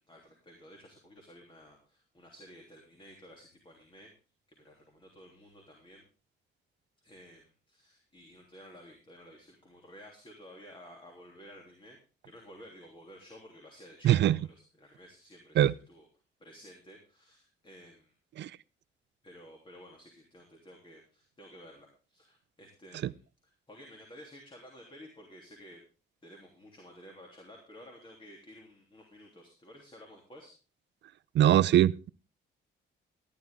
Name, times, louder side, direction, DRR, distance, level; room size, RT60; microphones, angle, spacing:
voice 1, 0.0-4.1 4.6-6.0 7.0-12.0 12.2-16.1 16.4-18.1 19.2-25.8 26.2-30.5, equal, 25° left, 3.2 m, -53 dB
voice 2, 14.0-14.4 15.6-15.7 18.4-18.5 31.3-32.1, right 12 dB, 65° right, 0.5 m, -22 dB
14.0 x 11.0 x 3.7 m
cardioid pair, 90°, 20 cm